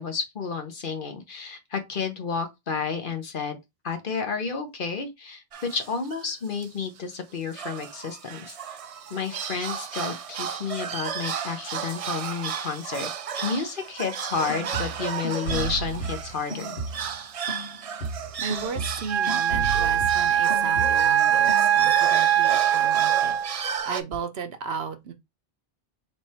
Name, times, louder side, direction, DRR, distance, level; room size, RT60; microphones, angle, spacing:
voice 1, 0.0-3.6 3.8-5.4 5.7-8.8 9.1-13.1 13.4-16.8, left 5 dB, 55° left, 1.0 m, -31 dB
sound 1, 5.5-6.3 6.6-6.7 7.0-7.1 7.5-24.0, right 7 dB, 55° right, 0.4 m, -34 dB
sound 2, 14.3-17.2 17.5-21.2 21.5-21.9, right 3 dB, 90° left, 1.9 m, -34 dB
voice 2, 18.4-25.1, right 6 dB, 75° right, 1.0 m, -35 dB
Wind instrument woodwind instrument, 19.1-23.7, right 10 dB, 15° right, 0.7 m, -22 dB
3.3 x 3.2 x 4.2 m
omnidirectional pair, 1.1 m